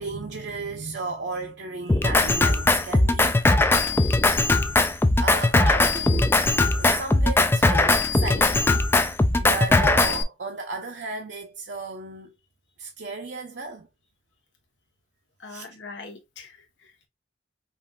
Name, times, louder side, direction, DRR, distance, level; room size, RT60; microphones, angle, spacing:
voice 1, 0.0-3.4 5.2-8.8 9.4-12.3 12.8-13.9 15.5-15.7, right 3 dB, 65° right, 0.7 m, -34 dB
Drum kit, 1.9-10.2, left 2 dB, 10° left, 0.3 m, -20 dB
voice 2, 15.4-17.1, left 4 dB, 75° left, 1.2 m, -44 dB
5.3 x 2.6 x 2.4 m
head